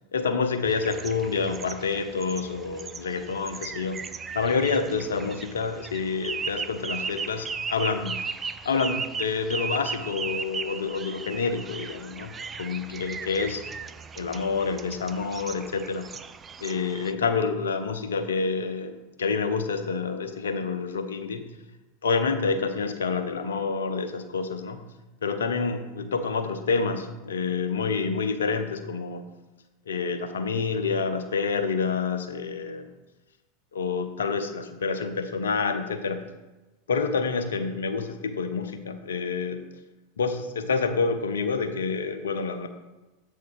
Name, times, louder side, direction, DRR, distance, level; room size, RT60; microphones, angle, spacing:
voice 1, 0.1-4.1 4.3-8.3 8.6-12.3 12.6-13.6 14.2-16.1 16.6-21.4 22.0-24.8 25.2-29.2 29.9-32.9 33.7-36.3 36.9-39.7 40.2-42.7, left 5 dB, 75° left, 8 dB, 0.6 m, -28 dB
sound 1, 0.6-17.1, right 5 dB, 25° right, 0.4 m, -37 dB
7.8 x 3.6 x 5.1 m, 1.1 s
figure-of-eight pair, 85°, 0 cm